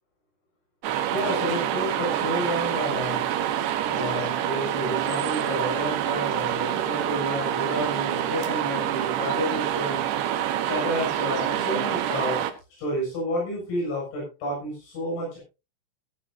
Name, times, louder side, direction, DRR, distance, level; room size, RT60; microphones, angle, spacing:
sound 1, 0.8-12.5, right 11 dB, 75° right, 3.0 m, -27 dB
voice 1, 1.1-3.3 3.9-10.0 10.7-12.5 12.8-15.4, left 1 dB, 85° left, -3 dB, 9.8 m, -30 dB
19.0 x 10.5 x 2.7 m, 0.28 s
omnidirectional pair, 5.7 m